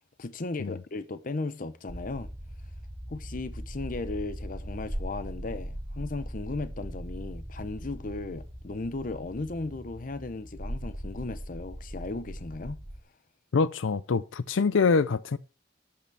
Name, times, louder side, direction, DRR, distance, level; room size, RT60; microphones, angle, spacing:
voice 1, 0.2-2.3 3.1-12.8, left 3 dB, 45° left, 0.7 m, -36 dB
sound 1, 1.9-13.0, equal, 30° right, 1.3 m, -39 dB
voice 2, 13.5-15.4, left 4 dB, 80° left, 0.5 m, -25 dB
12.0 x 8.7 x 3.4 m
head